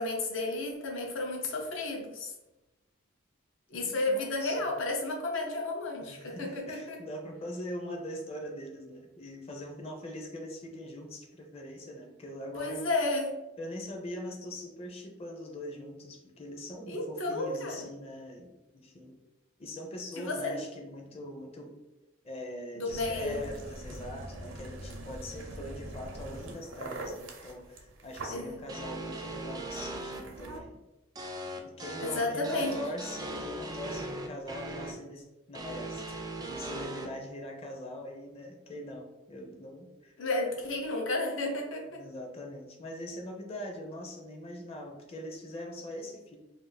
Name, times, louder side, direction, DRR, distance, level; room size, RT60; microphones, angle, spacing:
voice 1, 0.0-2.3 3.7-7.0 12.6-13.4 16.9-17.9 20.2-20.6 22.8-23.5 28.3-28.6 32.0-32.8 40.2-42.0, left 2 dB, 80° left, 0 dB, 0.7 m, -32 dB
voice 2, 3.7-4.7 6.0-12.8 13.6-19.1 19.6-21.7 22.2-30.8 31.8-36.2 36.4-40.2 40.6-40.8 41.9-46.4, left 1 dB, 30° left, 2 dB, 0.5 m, -42 dB
sound 1, 22.9-30.6, right 1 dB, 70° right, 0.6 m, -43 dB
sound 2, 28.7-30.2 31.2-34.9 35.5-37.1, right 1 dB, 20° right, 0.3 m, -39 dB
2.5 x 2.4 x 3.9 m, 1.0 s
head